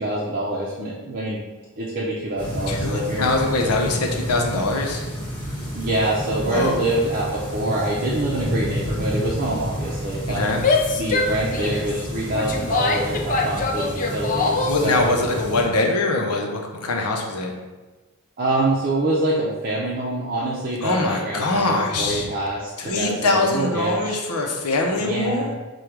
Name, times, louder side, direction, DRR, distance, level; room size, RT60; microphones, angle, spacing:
voice 1, 0.0-1.4 1.8-3.3 5.7-10.5 10.9-15.2 18.4-24.2 25.0-25.5, right 1 dB, 40° right, -5 dB, 0.6 m, -25 dB
sound 1, 2.4-15.6, equal, 10° left, 1.4 m, -30 dB
voice 2, 2.7-5.0 6.4-6.9 10.3-10.6 14.7-17.5 20.8-22.3 22.8-25.5, left 2 dB, 85° left, 2 dB, 0.7 m, -23 dB
Female speech woman speaking / Yell, 10.5-14.9, left 3 dB, 35° left, 0.4 m, -24 dB
5.0 x 2.3 x 4.5 m, 1.3 s
head